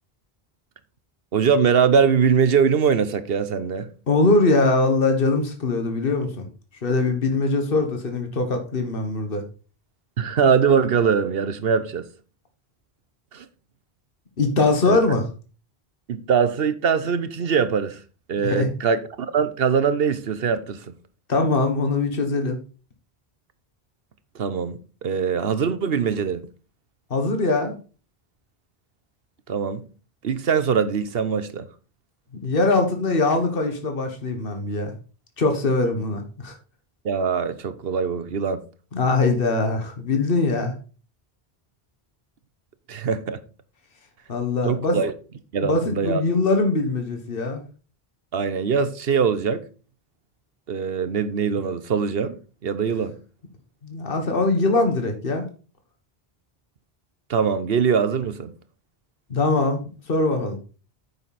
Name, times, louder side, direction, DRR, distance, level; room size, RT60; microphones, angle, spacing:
voice 1, 1.3-3.9 10.2-12.0 13.3-13.5 14.9-15.0 16.1-18.0 18.3-20.9 24.3-26.5 29.5-29.8 30.2-31.7 37.0-38.6 42.9-43.4 44.6-45.1 45.5-46.2 48.3-49.6 50.7-52.4 52.6-53.2 57.3-58.5, right 6 dB, 70° right, 1.1 m, -22 dB
voice 2, 4.1-6.5 6.8-9.4 14.4-15.2 18.4-18.7 21.3-22.6 27.1-27.8 32.4-34.9 35.4-36.6 38.9-40.7 44.3-45.0 45.6-47.6 53.8-55.4 59.3-60.6, left 3 dB, 60° left, 1.7 m, -22 dB
9.2 x 6.8 x 4.2 m
omnidirectional pair, 1.1 m